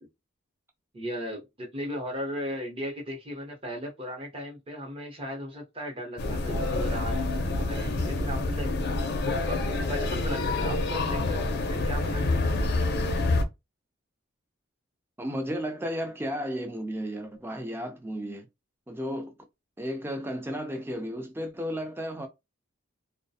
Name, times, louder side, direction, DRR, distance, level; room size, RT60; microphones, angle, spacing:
voice 1, 0.9-8.7 9.2-11.4 11.7-12.4, equal, 25° right, 0.8 m, -36 dB
sound 1, 6.2-13.4, left 2 dB, 50° left, 0.5 m, -27 dB
voice 2, 15.2-18.5 18.9-19.3 19.8-22.3, equal, 10° right, 0.4 m, -33 dB
2.3 x 2.1 x 2.7 m
head